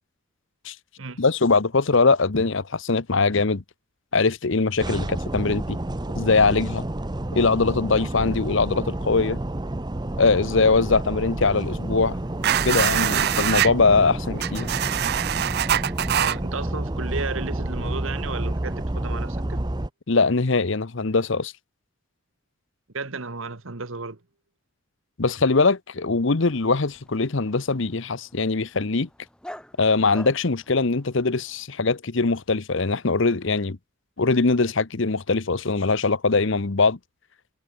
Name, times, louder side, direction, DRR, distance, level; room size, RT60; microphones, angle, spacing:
voice 1, 1.2-3.6 4.1-5.8 6.2-6.9 7.3-9.4 10.2-12.2 12.6-14.7 20.1-21.5 25.2-29.1 29.8-33.8 34.2-37.0, left 3 dB, 55° left, 0.9 m, -22 dB
sound 1, 4.8-19.9, right 1 dB, 20° right, 0.8 m, -30 dB
sound 2, 12.4-13.7 14.4-16.4, right 11 dB, 45° right, 0.4 m, -23 dB
voice 2, 16.2-19.6 22.9-24.2, right 4 dB, 65° right, 1.4 m, -33 dB
Dog, 26.3-31.7, equal, 5° left, 2.9 m, -47 dB
head